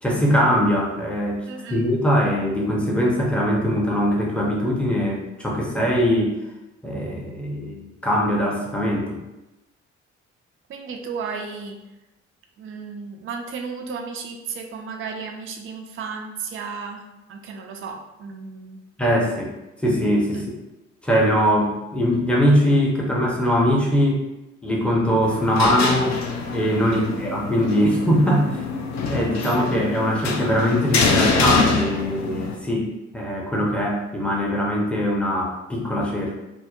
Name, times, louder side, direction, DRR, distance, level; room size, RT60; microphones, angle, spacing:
voice 1, 0.0-1.4 1.7-6.3 6.8-9.2 19.0-19.5 19.8-20.4 21.0-24.2 24.6-26.2 26.5-28.6 29.1-36.3, equal, 5° left, -3 dB, 0.7 m, -21 dB
voice 2, 1.5-1.9 10.7-11.8 12.6-17.0 17.3-18.8 20.3-20.5 26.8-27.1, right 5 dB, 35° right, 3 dB, 0.4 m, -34 dB
sound 1, 25.2-32.5, left 4 dB, 50° left, 0.5 m, -25 dB
2.7 x 2.0 x 2.4 m, 0.98 s
hypercardioid pair, 40°, 37 cm